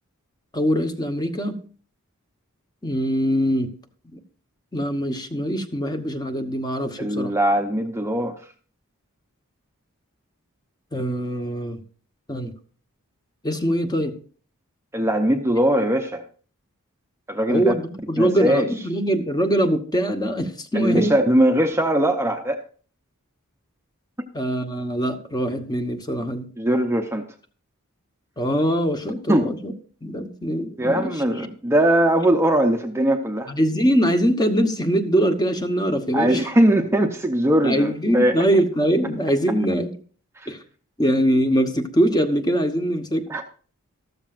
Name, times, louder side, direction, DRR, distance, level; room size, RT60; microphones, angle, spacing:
voice 1, 0.5-1.6 2.8-3.7 4.1-4.2 4.7-7.3 10.9-11.8 12.3-12.5 13.4-14.1 17.5-21.1 24.3-26.5 28.4-29.7 30.0-31.5 33.5-36.5 37.6-39.9 40.5-40.6 41.0-43.3, equal, 20° left, 7 dB, 1.0 m, -23 dB
voice 2, 7.0-8.4 14.9-16.2 17.3-17.7 18.2-18.7 20.7-22.6 24.2-24.3 26.6-27.2 29.3-29.5 30.8-33.5 36.1-38.4 40.4-40.5 43.3-43.4, right 1 dB, 10° right, 5 dB, 0.7 m, -20 dB
13.5 x 13.5 x 2.5 m, 0.40 s
head